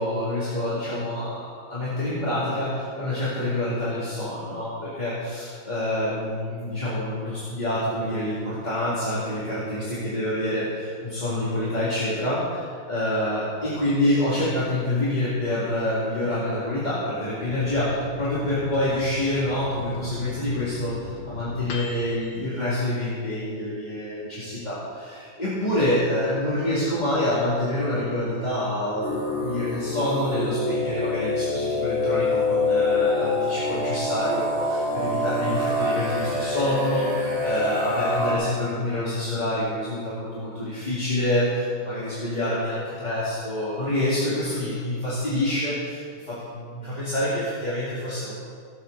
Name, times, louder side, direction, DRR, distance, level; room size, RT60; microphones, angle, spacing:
voice 1, 0.0-48.3, left 1 dB, 20° left, -10 dB, 2.4 m, -27 dB
Microwave oven, 17.5-23.5 23.9-24.0 24.3-24.9, left 4 dB, 85° left, 2.1 m, -39 dB
sound 1, 29.0-38.3, left 2 dB, 40° left, 3.0 m, -25 dB
18.0 x 7.7 x 4.0 m, 2.3 s
omnidirectional pair, 2.3 m